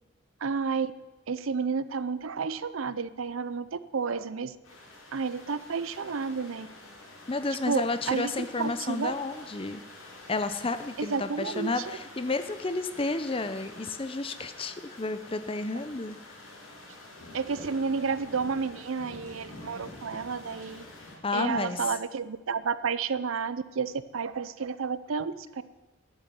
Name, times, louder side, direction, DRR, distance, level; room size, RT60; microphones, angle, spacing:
voice 1, 0.4-0.9 1.3-4.5 5.1-6.7 7.7-8.3 8.6-9.1 11.0-12.0 17.3-20.8 21.3-25.6, right 5 dB, 75° right, 15 dB, 0.6 m, -31 dB
sound 1, 4.6-21.2, left 2 dB, 70° left, 2.9 m, -47 dB
voice 2, 7.3-9.8 10.3-16.2 21.2-21.8, left 3 dB, 25° left, 11 dB, 0.7 m, -31 dB
12.0 x 7.1 x 9.5 m, 1.1 s
head